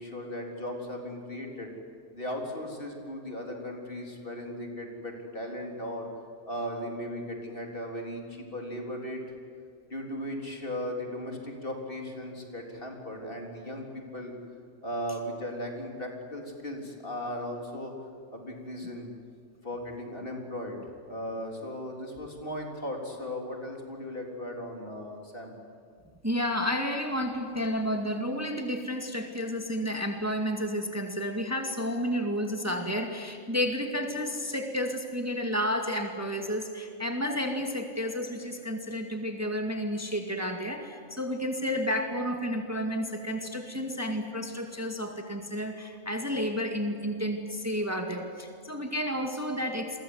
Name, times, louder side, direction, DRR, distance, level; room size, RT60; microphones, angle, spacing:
voice 1, 0.0-1.7 2.1-6.1 6.5-9.2 9.9-14.3 14.8-17.9 18.3-19.1 19.6-20.8 21.1-25.5, left 1 dB, 45° left, 1 dB, 4.1 m, -37 dB
voice 2, 26.2-50.0, equal, 15° right, 3 dB, 2.1 m, -31 dB
29.5 x 23.5 x 8.1 m, 2.5 s
omnidirectional pair, 1.3 m